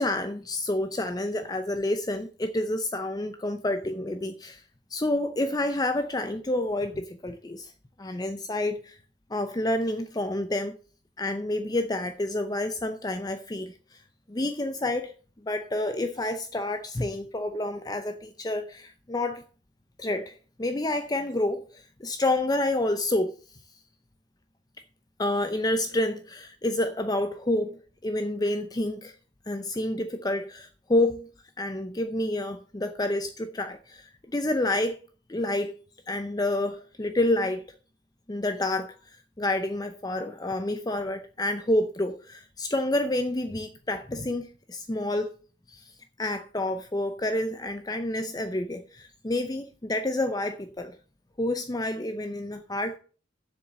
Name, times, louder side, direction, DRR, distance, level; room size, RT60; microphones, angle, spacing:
voice 1, 0.0-4.6 4.9-7.7 8.0-9.0 9.3-10.8 11.2-14.0 14.3-15.1 15.4-19.4 20.0-23.3 25.2-29.1 29.5-31.3 31.6-35.0 35.3-35.7 36.1-37.6 38.3-38.9 39.4-45.3 45.7-45.9 46.2-51.0 51.4-53.0, left 1 dB, 20° left, 0.6 m, -29 dB
7.6 x 7.0 x 7.5 m
head